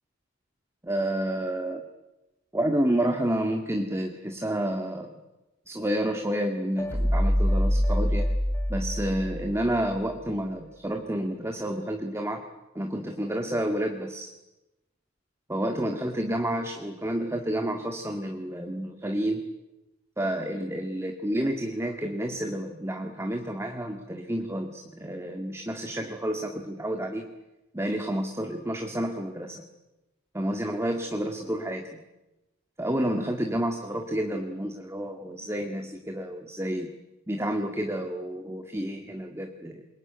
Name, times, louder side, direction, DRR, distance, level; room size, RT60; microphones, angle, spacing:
voice 1, 0.8-1.8 2.5-5.2 5.7-8.3 8.7-12.4 12.8-14.3 15.5-19.4 20.2-27.3 27.7-29.6 30.3-32.0 32.8-36.9 37.3-39.8, right 1 dB, 15° right, 4 dB, 1.9 m, -30 dB
sound 1, 6.8-10.0, equal, 15° left, 1.8 m, -25 dB
26.5 x 22.5 x 9.4 m, 0.99 s
head